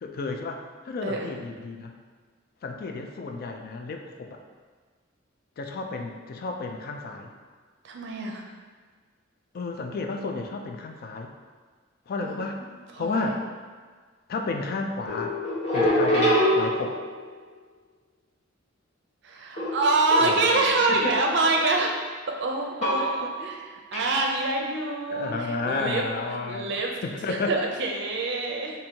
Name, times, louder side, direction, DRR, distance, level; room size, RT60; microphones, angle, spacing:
voice 1, 0.0-1.9 2.6-4.4 5.6-7.3 9.5-11.3 12.1-12.6 13.0-13.4 14.3-15.4 15.7-17.0 20.2-21.2 22.8-23.3 25.1-26.7 27.0-27.5, left 3 dB, 50° left, 3 dB, 0.3 m, -32 dB
voice 2, 1.0-1.3 7.8-8.4 12.2-12.3 12.6-12.7 12.9-13.4 19.2-21.9 22.3-23.1 23.4-27.0 27.3-28.7, right 3 dB, 65° right, 1 dB, 0.5 m, -26 dB
sound 1, 15.1-17.2 19.6-20.8 22.8-23.5 23.9-24.1, equal, 35° left, 1.0 m, -25 dB
4.2 x 2.7 x 2.7 m, 1.5 s
head